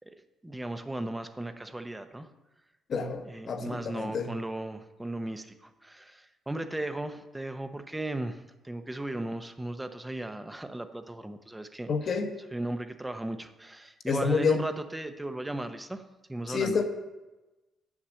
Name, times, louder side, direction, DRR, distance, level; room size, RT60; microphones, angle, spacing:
voice 1, 0.4-2.3 3.2-11.9 12.5-16.0 16.3-16.8, right 1 dB, 10° right, 9 dB, 0.8 m, -36 dB
voice 2, 2.9-4.3 11.9-12.3 14.1-14.6 16.5-16.8, left 5 dB, 55° left, 6 dB, 1.2 m, -28 dB
8.5 x 7.3 x 6.4 m, 1.1 s
cardioid pair, 90°, 0 cm